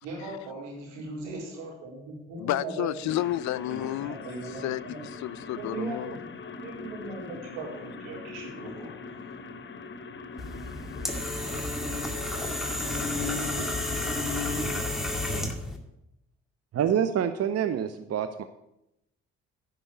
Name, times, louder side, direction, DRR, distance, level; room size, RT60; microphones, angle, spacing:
voice 1, 0.0-3.1 3.7-5.0 5.6-6.2 6.6-9.4, right 3 dB, 80° right, 4.1 m, -39 dB
voice 2, 2.4-4.2 4.5-6.2, left 15 dB, 60° left, 0.5 m, -31 dB
sound 1, 3.1-14.8, left 4 dB, 35° left, 1.1 m, -42 dB
sound 2, 10.4-15.8, left 2 dB, ahead, 2.0 m, -31 dB
voice 3, 16.7-18.4, right 9 dB, 45° right, 0.8 m, -26 dB
9.8 x 5.5 x 8.4 m
hypercardioid pair, 50°, 33 cm